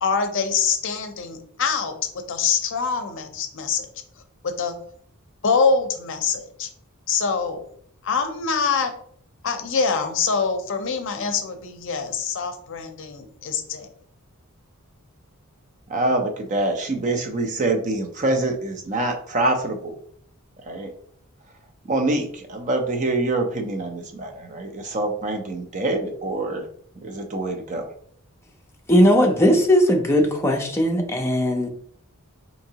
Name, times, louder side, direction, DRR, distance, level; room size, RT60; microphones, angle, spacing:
voice 1, 0.0-2.0 2.3-3.9 4.4-4.8 5.4-6.7 7.1-7.6 8.0-8.9 9.4-13.9, left 5 dB, 60° left, 7 dB, 0.5 m, -24 dB
voice 2, 15.9-20.0 20.7-20.9 21.8-26.6 27.0-27.8, right 2 dB, 35° right, 4 dB, 0.5 m, -25 dB
voice 3, 28.9-31.7, equal, 10° left, 1 dB, 0.5 m, -18 dB
4.5 x 2.8 x 2.8 m, 0.62 s
head